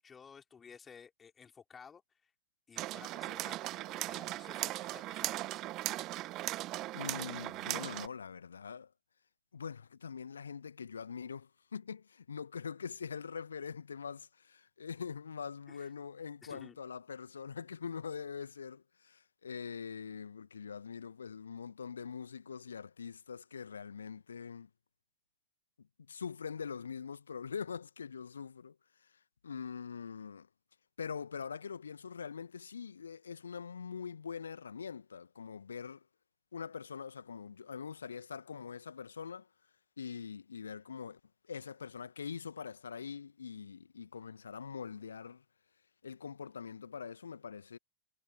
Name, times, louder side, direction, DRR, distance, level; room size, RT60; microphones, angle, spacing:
voice 1, 0.0-2.3 2.7-5.6 15.7-15.9 16.4-16.8, left 6 dB, 20° left, 4.3 m, -55 dB
sound 1, 2.8-8.1, right 17 dB, 35° right, 0.7 m, -38 dB
voice 2, 6.9-8.9 9.5-24.7 25.8-30.5 31.0-36.1 36.5-39.5 40.0-45.4 46.0-47.8, left 6 dB, 70° left, 1.3 m, -43 dB
figure-of-eight pair, 90°, 0 cm